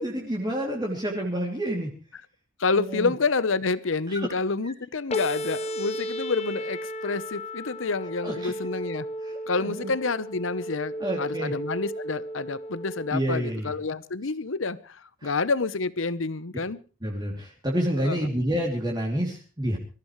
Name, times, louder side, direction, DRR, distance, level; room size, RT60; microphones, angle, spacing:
voice 1, 0.0-1.9 2.7-3.1 4.1-4.3 8.2-8.5 9.2-9.9 11.0-11.5 13.1-13.7 15.2-15.3 17.0-19.8, equal, 20° right, -1 dB, 2.9 m, -29 dB
voice 2, 2.6-9.1 9.5-16.8 18.0-18.3, left 4 dB, 80° left, 17 dB, 1.0 m, -28 dB
sound 1, 5.1-13.1, equal, 35° left, 1.2 m, -34 dB
25.0 x 15.0 x 3.2 m, 0.35 s
head